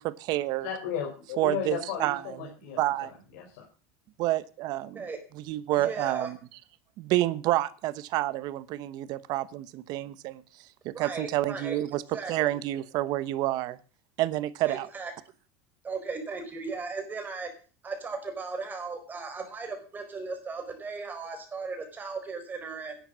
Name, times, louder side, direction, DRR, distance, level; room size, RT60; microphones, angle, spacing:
voice 1, 0.0-0.7 1.4-3.1 4.2-5.0 5.3-6.4 7.0-10.4 10.8-13.8 14.2-14.9, right 15 dB, 55° right, 17 dB, 1.0 m, -29 dB
voice 2, 0.6-3.6, left 7 dB, 75° left, 0 dB, 3.8 m, -35 dB
voice 3, 5.7-6.3 10.9-11.8 12.1-12.3 14.6-15.1 15.8-17.5 17.8-23.0, right 4 dB, 20° right, 6 dB, 4.5 m, -36 dB
11.0 x 9.1 x 7.4 m, 0.37 s
supercardioid pair, 130°, 8 cm